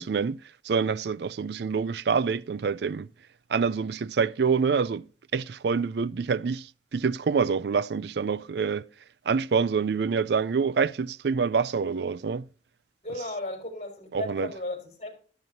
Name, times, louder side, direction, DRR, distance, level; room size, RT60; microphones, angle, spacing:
voice 1, 0.0-3.1 3.5-5.1 5.3-8.9 9.3-12.5 14.1-14.5, right 5 dB, 65° right, 0.4 m, -26 dB
voice 2, 13.0-15.2, left 2 dB, 40° left, 4.4 m, -35 dB
13.5 x 12.5 x 2.8 m
head